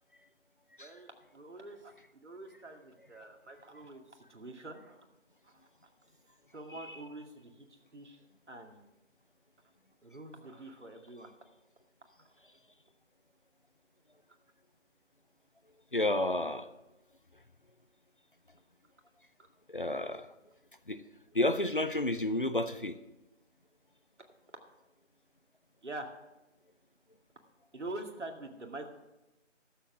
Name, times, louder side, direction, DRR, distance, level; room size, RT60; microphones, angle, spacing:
voice 1, 0.8-1.9 2.2-5.0 5.4-5.5 6.5-7.7 7.9-8.2 8.5-8.9 10.0-11.3 25.8-26.1 27.7-28.9, right 2 dB, 70° right, 3 dB, 2.1 m, -45 dB
voice 2, 15.9-16.7 19.7-20.2 20.9-21.0 21.3-22.9, left 1 dB, 45° left, 12 dB, 0.6 m, -30 dB
13.0 x 7.5 x 6.0 m, 0.98 s
figure-of-eight pair, 175°, 37 cm